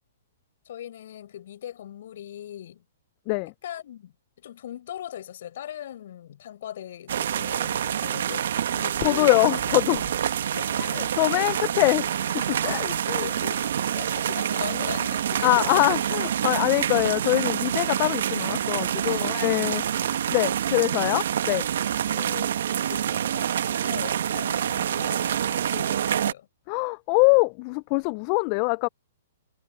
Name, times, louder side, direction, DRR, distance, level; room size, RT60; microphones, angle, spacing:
voice 1, 0.6-2.8 3.6-9.5 10.2-11.1 12.8-15.9 16.5-16.6 18.8-19.7 20.7-21.2 22.0-26.5, left 11 dB, 60° left, 7.8 m, -40 dB
sound 1, 7.1-26.3, right 9 dB, 65° right, 1.3 m, -27 dB
voice 2, 9.0-10.1 10.8-13.3 15.4-21.7 26.7-28.9, left 30 dB, 40° left, 0.6 m, -24 dB
hypercardioid pair, 130°, 0 cm